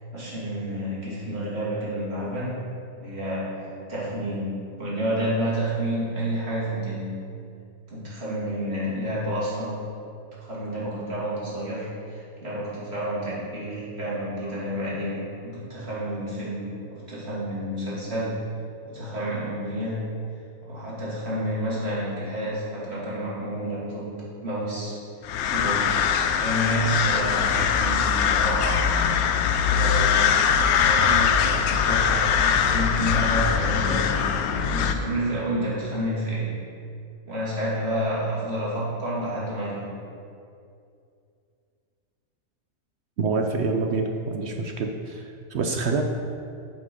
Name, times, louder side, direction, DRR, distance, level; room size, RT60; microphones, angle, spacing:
voice 1, 0.1-2.6 3.0-3.6 3.9-7.2 7.9-9.9 10.4-18.4 18.8-20.1 20.6-25.0 25.5-26.0 26.4-29.1 29.5-30.3 30.7-36.5 37.2-39.9, right 1 dB, 45° right, -7 dB, 2.7 m, -30 dB
sound 1, 25.2-34.9, left 7 dB, 90° left, 1.0 m, -22 dB
voice 2, 43.2-46.0, right 4 dB, 65° right, 4 dB, 0.7 m, -26 dB
8.2 x 6.1 x 5.3 m, 2.5 s
omnidirectional pair, 1.5 m